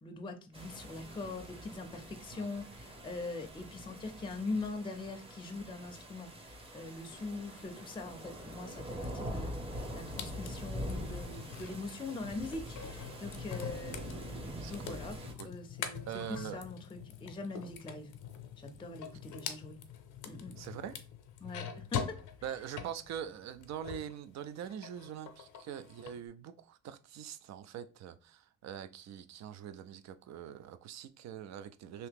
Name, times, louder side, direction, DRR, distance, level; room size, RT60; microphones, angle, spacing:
voice 1, 0.0-15.2 15.4-18.1 18.6-19.8 20.2-20.6 21.4-22.2, left 3 dB, 15° left, 0.5 m, -42 dB
sound 1, 0.5-15.3, equal, 20° right, 0.7 m, -44 dB
sound 2, 9.0-24.2 24.5-26.2, left 8 dB, 85° left, 0.6 m, -45 dB
voice 2, 14.6-15.0 15.4-15.5 16.1-16.6 20.6-21.0 22.4-32.1, right 9 dB, 65° right, 0.4 m, -43 dB
2.8 x 2.8 x 3.4 m
cardioid pair, 90°, 30 cm